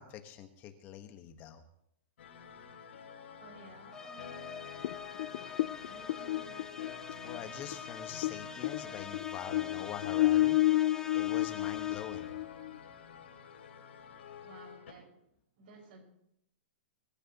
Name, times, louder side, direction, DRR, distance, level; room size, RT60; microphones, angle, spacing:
voice 1, 0.0-1.6 7.2-10.6 11.1-12.3, left 10 dB, 30° left, 1.3 m, -44 dB
sound 1, 2.2-14.9, left 7 dB, 80° left, 5.2 m, -50 dB
voice 2, 3.4-7.2 14.4-16.0, right 3 dB, 55° right, 5.5 m, -56 dB
sound 2, 3.9-12.4, left 6 dB, 10° left, 0.8 m, -45 dB
sound 3, 4.8-8.4 8.6-12.8, left 15 dB, 55° left, 0.5 m, -30 dB
25.0 x 13.5 x 3.0 m
hypercardioid pair, 150°, 6 cm